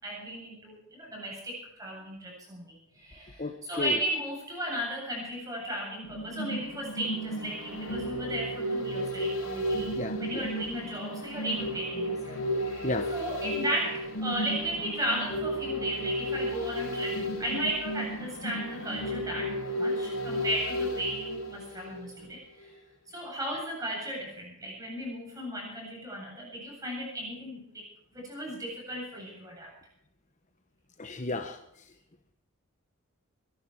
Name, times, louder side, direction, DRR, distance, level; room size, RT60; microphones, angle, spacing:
voice 1, 0.0-9.9 10.2-22.7 23.1-27.9 28.1-29.7, equal, 15° right, -3 dB, 7.9 m, -35 dB
voice 2, 3.4-3.9 9.9-10.5 12.8-13.1 31.0-31.6, left 2 dB, 35° left, 8 dB, 0.8 m, -33 dB
sound 1, 6.0-22.3 22.6-22.7, equal, 65° left, 4.8 m, -33 dB
23.5 x 11.5 x 4.6 m, 0.79 s
head